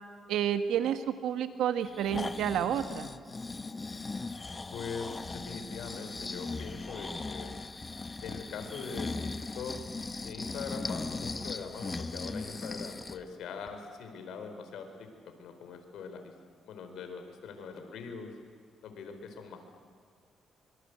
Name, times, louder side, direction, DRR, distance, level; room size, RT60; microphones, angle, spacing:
voice 1, 0.3-3.1, right 9 dB, 85° right, 9 dB, 1.7 m, -30 dB
Breathing, 1.8-13.2 13.7-13.8, left 3 dB, 25° left, 1.0 m, -38 dB
voice 2, 4.7-7.5 8.2-9.8 10.2-15.1 15.4-16.3 16.6-18.3 18.8-19.8, left 5 dB, 80° left, 6 dB, 4.4 m, -42 dB
25.5 x 24.5 x 8.1 m, 2.1 s
cardioid pair, 90°, 0 cm